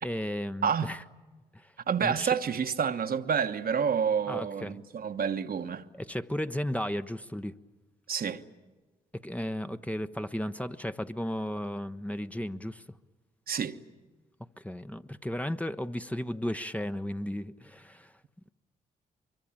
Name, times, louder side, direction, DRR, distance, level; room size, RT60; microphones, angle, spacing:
voice 1, 0.0-1.0 1.5-1.7 2.0-2.3 4.3-4.8 5.9-7.6 9.2-13.0 14.6-18.1, equal, 10° left, 0.9 m, -34 dB
voice 2, 0.6-1.0 1.9-5.8 8.1-8.4 13.5-13.8, right 7 dB, 55° right, 1.3 m, -29 dB
24.0 x 23.0 x 8.9 m
supercardioid pair, 50°, 18 cm